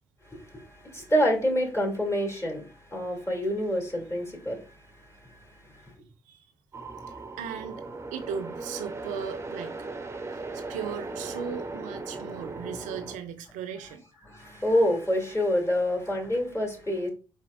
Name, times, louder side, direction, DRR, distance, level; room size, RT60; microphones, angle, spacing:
voice 1, 0.5-2.6 2.9-4.6 14.3-17.1, equal, 20° left, 2.5 m, -27 dB
sound 1, 6.7-13.2, right 3 dB, 20° right, 0.7 m, -38 dB
voice 2, 7.4-7.8 8.1-9.8 10.3-14.0, right 7 dB, 70° right, 0.6 m, -37 dB
4.6 x 4.3 x 2.4 m
hypercardioid pair, 40°, 13 cm